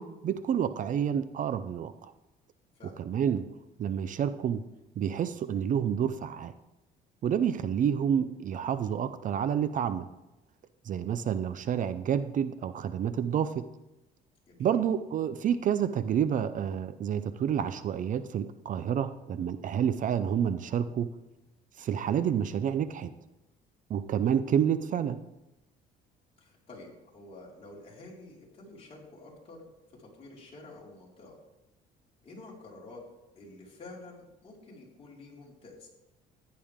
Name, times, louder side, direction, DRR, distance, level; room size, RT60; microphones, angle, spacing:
voice 1, 0.0-2.1 3.0-3.4 3.8-4.6 5.0-6.5 7.2-10.1 10.9-13.6 14.6-21.1 21.8-23.1 23.9-25.2, right 8 dB, 50° right, 12 dB, 0.6 m, -29 dB
voice 2, 26.4-29.6 30.0-31.4 32.2-33.0 33.3-35.9, left 2 dB, 35° left, -4 dB, 4.8 m, -49 dB
15.0 x 10.5 x 3.7 m, 0.95 s
cardioid pair, 110°, 17 cm